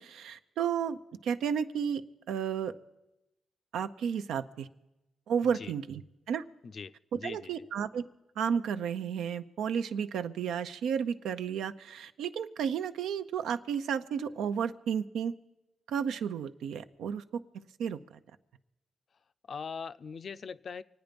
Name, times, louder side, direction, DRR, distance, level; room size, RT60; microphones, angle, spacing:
voice 1, 0.0-2.0 2.3-2.7 3.7-4.7 5.3-6.0 6.3-6.4 7.1-8.1 8.4-15.3 15.9-17.2 17.5-18.2, right 7 dB, 90° right, 10 dB, 0.6 m, -32 dB
voice 2, 5.4-5.7 6.6-7.6 19.5-20.8, left 5 dB, 50° left, 14 dB, 0.4 m, -41 dB
25.0 x 9.2 x 5.2 m, 0.95 s
cardioid pair, 90°, 0 cm